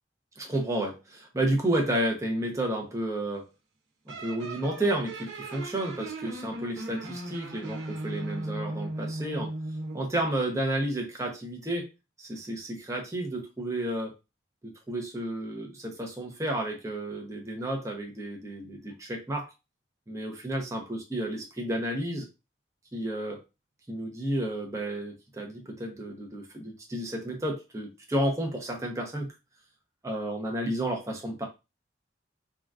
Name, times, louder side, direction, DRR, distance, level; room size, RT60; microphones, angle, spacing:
voice 1, 0.4-3.5 4.1-9.5 9.9-11.9 12.2-14.1 14.6-19.5 20.1-22.3 22.9-23.4 23.9-29.3 30.0-31.4, right 1 dB, 15° right, 1 dB, 0.7 m, -31 dB
sound 1, 4.1-10.1, right 1 dB, 75° right, 0.7 m, -37 dB
3.6 x 2.4 x 2.3 m, 0.26 s
head